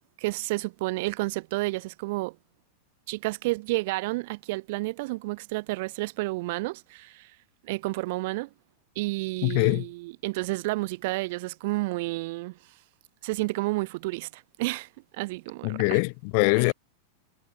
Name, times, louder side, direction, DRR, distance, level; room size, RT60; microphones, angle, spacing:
voice 1, 0.2-2.4 3.1-7.3 7.6-8.5 9.0-12.6 13.2-16.0, right 22 dB, 50° right, 7.0 m, -31 dB
voice 2, 9.4-9.9 15.6-16.7, left 37 dB, 45° left, 4.3 m, -23 dB
figure-of-eight pair, 90°, 0 cm